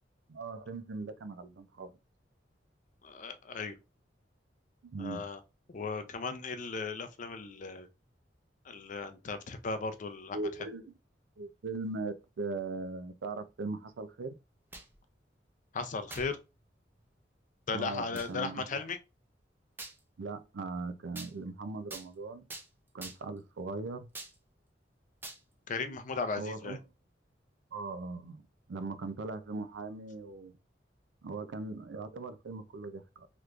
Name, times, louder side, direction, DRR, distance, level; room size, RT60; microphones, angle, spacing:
voice 1, 0.3-1.9 4.8-5.2 10.3-10.9 11.4-14.3 17.7-18.7 20.2-22.5 22.9-24.1 25.9-26.0 26.3-26.8 27.7-28.4 28.7-30.5 31.2-33.3, right 3 dB, 90° right, 0.5 m, -39 dB
voice 2, 3.0-3.7 5.0-5.4 5.7-7.9 8.6-10.4 15.7-16.4 17.7-19.0 25.7-26.8, left 4 dB, 45° left, 0.5 m, -36 dB
sound 1, 14.5-15.0 16.1-16.3 17.0-17.1 18.2-18.3 19.8-20.0 21.2-21.3 21.9-22.1 22.5-22.7 23.0-23.4 24.1-24.4 25.2-25.4, right 2 dB, 10° right, 0.5 m, -44 dB
3.4 x 3.0 x 2.4 m
head